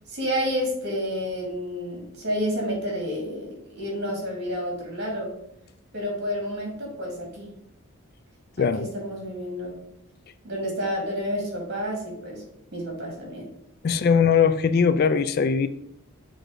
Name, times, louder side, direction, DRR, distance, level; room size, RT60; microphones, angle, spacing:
voice 1, 0.1-5.3 5.9-7.5 8.6-9.7 10.4-12.4 12.7-13.5 13.9-14.0, equal, 50° right, 2.4 m, -30 dB
voice 2, 13.8-15.7, left 6 dB, 45° left, 0.3 m, -20 dB
6.2 x 3.8 x 5.1 m
head